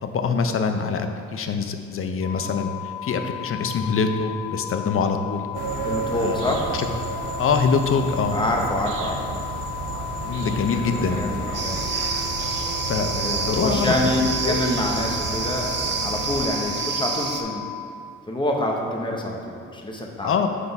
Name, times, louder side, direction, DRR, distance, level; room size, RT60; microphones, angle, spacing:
voice 1, 0.0-5.5 6.1-6.9 7.4-8.4 10.2-11.2 12.9-13.9 14.4-14.6 20.2-20.5, left 5 dB, 45° left, 7 dB, 0.6 m, -24 dB
sound 1, 2.2-17.9, left 12 dB, 75° left, 0.8 m, -35 dB
sound 2, 5.5-16.5, right 4 dB, 90° right, 0.6 m, -32 dB
voice 2, 5.8-6.7 8.3-9.4 11.2-11.8 13.1-17.6 18.3-20.4, left 1 dB, 15° left, 0 dB, 0.9 m, -26 dB
sound 3, 11.5-17.4, right 5 dB, 35° right, 0.6 m, -29 dB
6.0 x 3.8 x 5.2 m, 2.4 s
cardioid pair, 90°, 30 cm